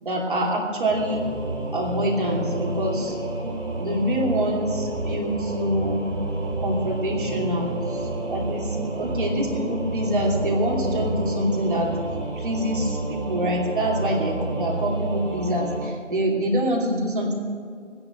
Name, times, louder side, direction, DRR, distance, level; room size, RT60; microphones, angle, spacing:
voice 1, 0.0-1.3 1.7-3.2 3.8-6.1 6.6-11.9 12.3-17.3, equal, 45° right, -2 dB, 2.8 m, -25 dB
Singing / Musical instrument, 0.9-15.9, right 2 dB, 25° right, 3.2 m, -30 dB
16.5 x 10.5 x 7.6 m, 2.1 s
figure-of-eight pair, 155°, 36 cm